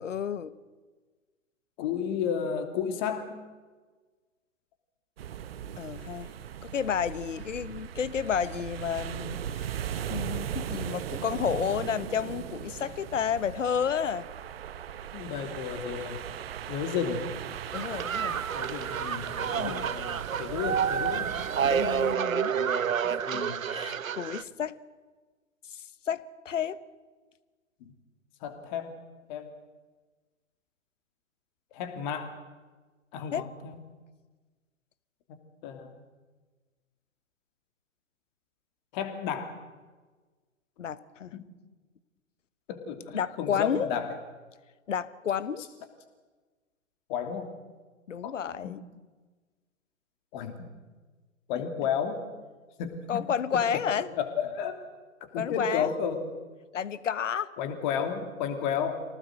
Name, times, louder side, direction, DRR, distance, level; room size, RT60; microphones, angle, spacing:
voice 1, 0.0-0.5 5.8-6.3 6.6-9.7 10.1-14.3 17.7-18.4 19.6-19.9 21.6-22.6 23.1-23.4 23.7-24.8 25.7-26.8 33.3-33.5 40.8-41.4 43.1-43.9 44.9-45.6 48.1-48.8 53.1-54.1 55.4-56.0 56.7-57.5, left 8 dB, 65° left, 16 dB, 1.2 m, -31 dB
voice 2, 1.8-3.4 15.1-16.2 16.7-17.3 18.5-21.4 22.5-23.6 27.8-27.9 28.4-28.9 29.3-29.5 31.7-32.3 33.1-33.8 35.6-36.0 38.9-39.5 41.3-41.4 42.7-44.1 47.1-47.5 48.2-48.3 48.6-48.8 50.3-50.7 51.5-52.2 52.8-53.3 54.1-54.8 55.3-56.2 57.6-59.0, left 7 dB, 35° left, 6 dB, 3.0 m, -32 dB
sound 1, 5.2-22.2, right 9 dB, 45° right, 1.3 m, -38 dB
sound 2, 17.7-24.4, right 7 dB, 75° right, 0.9 m, -29 dB
25.0 x 18.5 x 7.9 m, 1.3 s
figure-of-eight pair, 125°, 41 cm